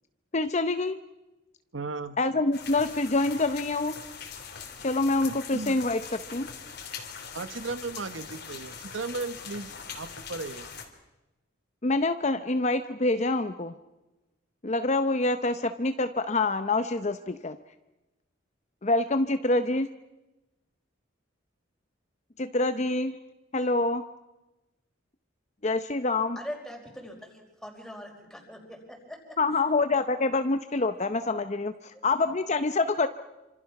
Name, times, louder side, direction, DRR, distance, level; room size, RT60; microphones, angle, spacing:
voice 1, 0.3-1.0 2.2-4.0 4.8-6.5 11.8-13.7 14.6-17.6 18.8-19.9 22.4-23.2 23.5-24.0 25.6-26.4 29.4-33.1, left 2 dB, 35° left, 10 dB, 0.7 m, -26 dB
voice 2, 1.7-2.2 5.5-5.8 7.3-10.7, right 3 dB, 75° right, 12 dB, 1.1 m, -36 dB
sound 1, 2.5-10.8, left 6 dB, 55° left, 3.2 m, -42 dB
voice 3, 26.3-29.4 31.9-32.3, equal, ahead, 1 dB, 4.8 m, -42 dB
27.0 x 26.0 x 5.9 m, 1.0 s
head